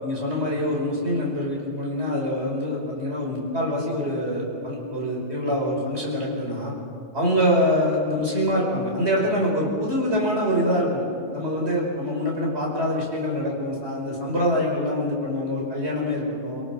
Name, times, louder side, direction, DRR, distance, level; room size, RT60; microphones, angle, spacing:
voice 1, 0.0-6.7 7.1-11.0 11.3-16.6, equal, 55° right, -2 dB, 5.3 m, -25 dB
28.5 x 18.0 x 6.2 m, 2.5 s
omnidirectional pair, 1.3 m